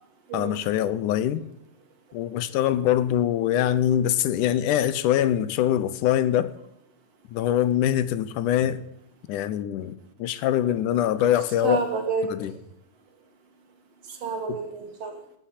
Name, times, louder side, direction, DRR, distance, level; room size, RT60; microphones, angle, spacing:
voice 1, 0.3-1.4 2.1-6.5 7.3-8.8 9.3-11.8 12.3-12.5 14.5-14.6, left 11 dB, 85° left, 14 dB, 2.3 m, -23 dB
voice 2, 11.6-12.5 14.1-15.2, right 5 dB, 55° right, 6 dB, 2.7 m, -29 dB
11.5 x 9.2 x 9.9 m, 0.79 s
omnidirectional pair, 3.5 m